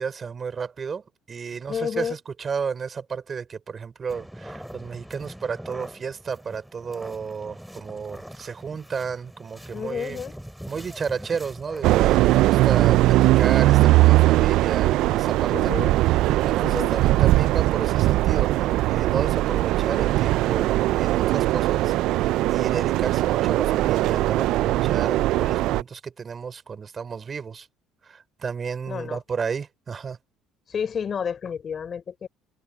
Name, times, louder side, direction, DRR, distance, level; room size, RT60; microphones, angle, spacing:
voice 1, 0.0-10.2 10.7-15.7 16.4-27.7 28.0-30.2, right 6 dB, 35° right, 5.1 m, -33 dB
voice 2, 1.7-2.2 9.7-10.4 15.5-15.9 16.6-16.9 28.9-29.2 30.7-32.3, left 7 dB, 40° left, 4.4 m, -30 dB
sound 1, 4.1-11.9, equal, ahead, 5.4 m, -42 dB
sound 2, 11.8-25.8, right 17 dB, 70° right, 0.3 m, -20 dB
supercardioid pair, 90°, 0 cm